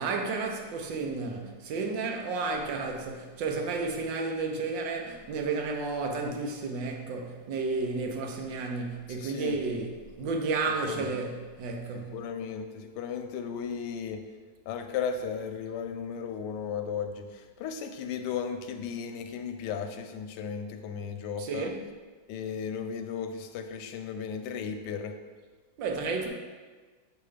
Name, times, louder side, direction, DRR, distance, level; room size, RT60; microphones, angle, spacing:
voice 1, 0.0-12.2 21.4-21.8 25.8-26.3, right 4 dB, 75° right, 1.5 m, -32 dB
voice 2, 9.1-9.6 10.8-11.1 11.9-14.2 14.7-21.7 22.3-25.2, left 6 dB, 75° left, 1.1 m, -35 dB
6.8 x 3.1 x 4.9 m
omnidirectional pair, 2.0 m